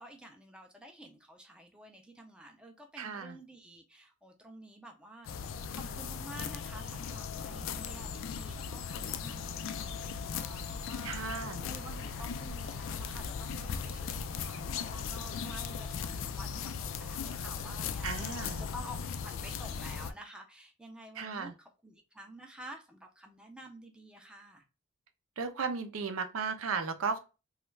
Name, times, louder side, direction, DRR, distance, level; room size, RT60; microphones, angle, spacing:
voice 1, 0.0-11.2 11.6-19.0 19.2-24.6, right 1 dB, 5° right, 0.4 m, -50 dB
voice 2, 3.0-3.4 11.0-11.7 18.0-18.7 21.2-21.5 25.4-27.2, right 5 dB, 80° right, 0.5 m, -35 dB
sound 1, 5.3-20.1, left 6 dB, 65° left, 0.3 m, -38 dB
3.1 x 2.3 x 3.1 m
head